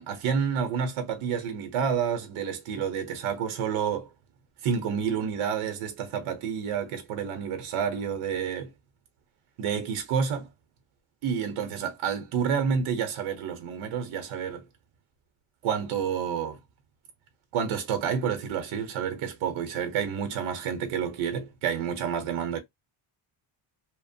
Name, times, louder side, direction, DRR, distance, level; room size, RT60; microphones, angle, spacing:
voice 1, 0.0-4.1 4.6-8.7 9.6-10.5 11.2-14.6 15.6-16.6 17.5-22.6, right 7 dB, 75° right, 0.8 m, -29 dB
2.8 x 2.0 x 2.5 m
cardioid pair, 135°, 49 cm